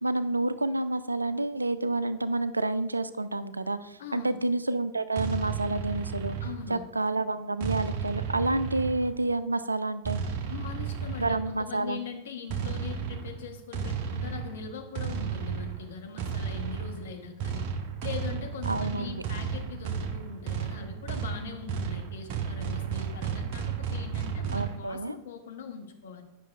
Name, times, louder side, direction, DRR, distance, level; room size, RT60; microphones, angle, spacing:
voice 1, 0.0-6.4 6.7-10.2 11.2-12.0 18.7-19.1 24.5-25.2, right 2 dB, 80° right, 14 dB, 0.3 m, -29 dB
voice 2, 4.0-4.4 6.4-6.9 10.5-17.6 18.0-26.2, left 6 dB, 60° left, 4 dB, 0.9 m, -41 dB
sound 1, 5.1-6.9 7.6-9.3 10.0-11.7 12.5-24.8, right 6 dB, 45° right, 0.7 m, -33 dB
9.8 x 5.8 x 2.4 m, 0.88 s
figure-of-eight pair, 90°, 0 cm